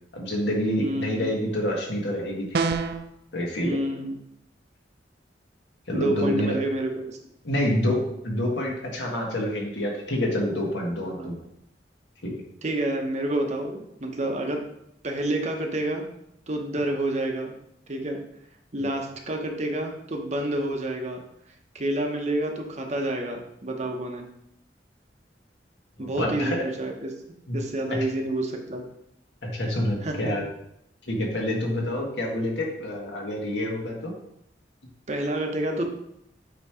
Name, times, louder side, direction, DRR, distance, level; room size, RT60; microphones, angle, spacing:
voice 1, 0.1-2.6 3.3-3.8 5.9-6.5 7.4-11.4 12.2-12.3 18.8-18.9 26.0-26.6 27.5-27.6 27.9-28.0 29.4-30.4 31.1-34.1, left 1 dB, 75° left, -1 dB, 1.6 m, -27 dB
voice 2, 0.8-1.3 3.6-4.1 5.9-7.2 11.2-11.3 12.6-14.7 15.0-16.0 16.5-17.5 17.9-18.2 18.7-21.2 21.7-24.3 26.0-27.1 27.5-28.9 30.0-30.3 35.1-35.8, right 1 dB, 40° right, 3 dB, 0.9 m, -28 dB
sound 1, 2.5-3.1, right 4 dB, 60° right, 0.5 m, -25 dB
8.2 x 3.0 x 4.9 m, 0.77 s
head